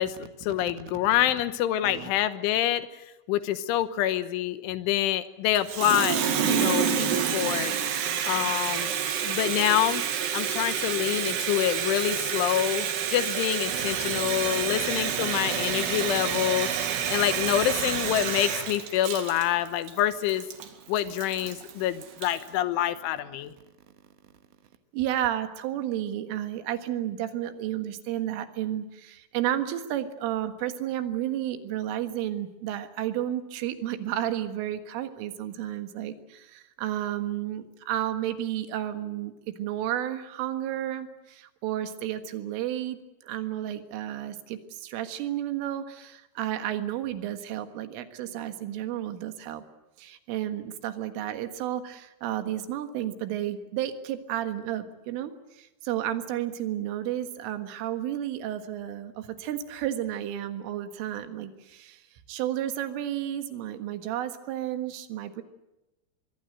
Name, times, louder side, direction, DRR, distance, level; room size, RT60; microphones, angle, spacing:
voice 1, 0.0-2.9 3.3-7.7 8.3-8.9 9.2-10.0 10.3-16.7 17.1-20.4 20.9-23.5, left 12 dB, 80° left, 12 dB, 3.4 m, -26 dB
Water tap faucet, 5.5-22.5, right 8 dB, 60° right, 4.0 m, -28 dB
voice 2, 13.7-18.4 24.9-43.0 43.2-49.6 50.0-62.0 62.3-65.4, right 12 dB, 85° right, 9 dB, 4.1 m, -32 dB
24.5 x 22.0 x 7.9 m, 1.0 s
omnidirectional pair, 5.7 m